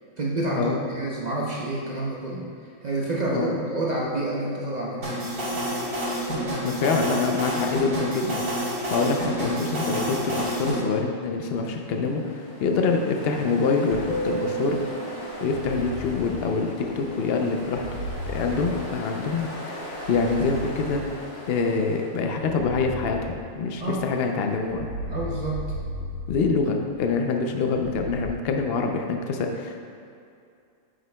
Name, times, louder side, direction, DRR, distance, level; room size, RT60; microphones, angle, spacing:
voice 1, 0.2-2.5 2.8-5.2 23.7-24.0 25.1-25.6, right 2 dB, 45° right, -4 dB, 0.6 m, -28 dB
voice 2, 3.3-3.6 6.6-14.8 15.4-17.9 18.3-19.5 20.1-21.0 21.5-24.9 26.3-29.8, left 4 dB, 70° left, 3 dB, 0.5 m, -25 dB
sound 1, 5.0-10.8, equal, 75° right, 2.2 m, -28 dB
Ocean, 11.5-22.6, right 1 dB, 50° left, 1.7 m, -36 dB
sound 2, 13.9-14.6 15.4-17.0 17.6-19.4 19.9-21.5 22.3-24.0 24.6-27.1 27.7-28.3, left 1 dB, 90° right, 1.4 m, -36 dB
8.9 x 6.4 x 2.2 m, 2.5 s
omnidirectional pair, 1.6 m